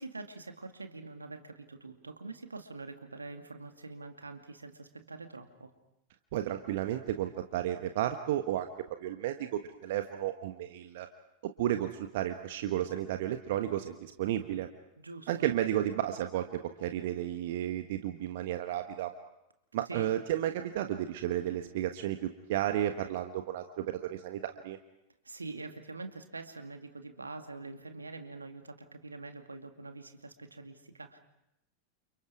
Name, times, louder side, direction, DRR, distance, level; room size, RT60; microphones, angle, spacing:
voice 1, 0.0-5.7 15.0-15.5 19.9-20.1 25.2-31.2, right 3 dB, 80° right, 6 dB, 2.4 m, -45 dB
voice 2, 6.3-8.7 9.0-11.1 11.4-14.7 15.3-19.1 19.7-24.8, right 12 dB, 55° right, 7 dB, 1.3 m, -33 dB
30.0 x 28.5 x 4.9 m, 0.86 s
figure-of-eight pair, 90°, 0 cm